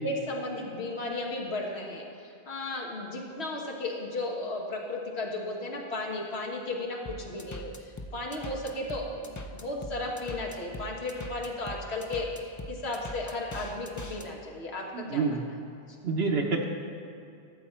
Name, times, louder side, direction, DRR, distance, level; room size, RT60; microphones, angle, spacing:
voice 1, 0.0-15.6, left 2 dB, 85° left, -1 dB, 1.6 m, -35 dB
sound 1, 7.1-14.3, left 1 dB, 25° left, 0.4 m, -41 dB
voice 2, 14.9-15.4 16.0-16.7, right 4 dB, 80° right, 1 dB, 1.0 m, -27 dB
13.0 x 7.5 x 4.3 m, 2.5 s
omnidirectional pair, 1.1 m